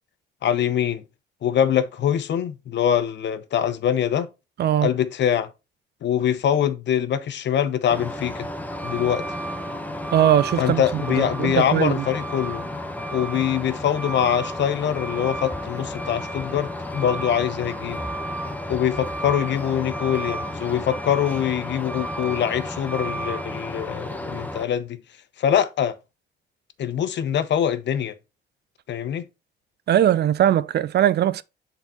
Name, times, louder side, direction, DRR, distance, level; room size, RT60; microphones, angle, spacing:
voice 1, 0.4-1.0 1.4-4.3 4.8-5.5 6.0-8.5 8.8-9.2 10.6-12.7 13.1-18.0 18.7-25.0 25.4-25.9 26.8-28.1 28.9-29.2, left 9 dB, 65° left, 0.9 m, -23 dB
voice 2, 4.6-4.9 10.1-12.1 29.9-31.4, right 11 dB, 55° right, 0.5 m, -20 dB
Truck, 7.9-24.6, equal, 10° left, 1.1 m, -32 dB
7.1 x 4.0 x 4.3 m
cardioid pair, 90°, 20 cm